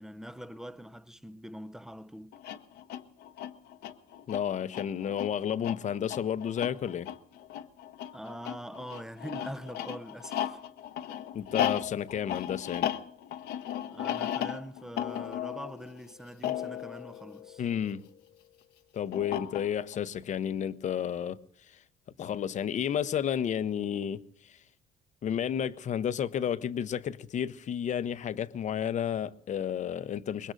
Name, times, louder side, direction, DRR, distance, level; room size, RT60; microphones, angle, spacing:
voice 1, 0.0-2.4 8.1-10.6 13.9-17.6, equal, 5° right, 0.5 m, -43 dB
sound 1, 2.3-18.1 19.1-20.0, left 10 dB, 80° left, 0.9 m, -36 dB
voice 2, 4.3-7.1 11.3-12.9 17.6-18.1 18.9-21.4 22.2-24.6 25.2-30.5, left 9 dB, 45° left, 0.7 m, -31 dB
24.0 x 21.0 x 2.6 m
cardioid pair, 110°, 17 cm